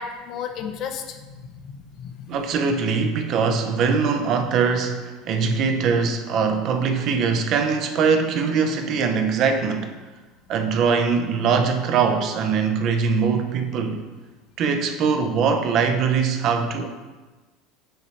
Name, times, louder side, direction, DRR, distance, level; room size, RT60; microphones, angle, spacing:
voice 1, 0.0-2.3, left 7 dB, 55° left, 6 dB, 0.5 m, -34 dB
voice 2, 2.3-9.9 10.5-14.0 14.6-16.9, right 5 dB, 55° right, 6 dB, 0.5 m, -22 dB
5.6 x 3.1 x 2.8 m, 1.2 s
supercardioid pair, 95°, 0 cm